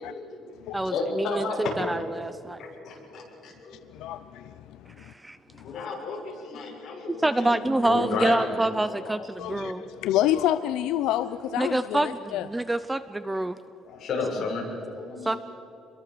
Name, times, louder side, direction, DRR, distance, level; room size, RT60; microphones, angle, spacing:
voice 1, 0.0-1.9 2.6-3.8 5.6-8.5 8.9-9.1 9.6-9.9 11.1-11.2 13.8-15.4, left 4 dB, 45° left, -2 dB, 7.0 m, -33 dB
voice 2, 0.7-2.6 5.0-5.4 7.1-9.8 11.6-13.6 15.2-15.4, right 2 dB, 10° right, 13 dB, 0.5 m, -27 dB
voice 3, 3.7-5.1 5.5-5.8 9.4-12.5, left 12 dB, 85° left, 12 dB, 0.6 m, -28 dB
27.5 x 22.5 x 6.9 m, 2.8 s
cardioid pair, 170°, 0 cm